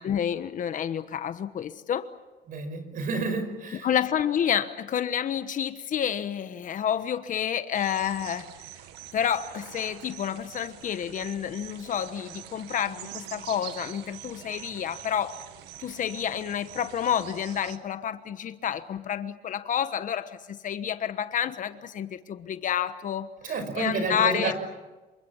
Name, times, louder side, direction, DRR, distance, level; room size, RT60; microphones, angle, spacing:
voice 1, 0.0-2.1 3.8-8.5 9.1-15.4 15.8-24.5, left 9 dB, 50° left, 11 dB, 1.2 m, -29 dB
voice 2, 2.5-3.9 23.4-24.5, right 4 dB, 55° right, 8 dB, 5.5 m, -30 dB
sound 1, 7.7-17.8, right 12 dB, 90° right, 1.8 m, -44 dB
28.0 x 24.5 x 7.3 m, 1.2 s
cardioid pair, 110°, 17 cm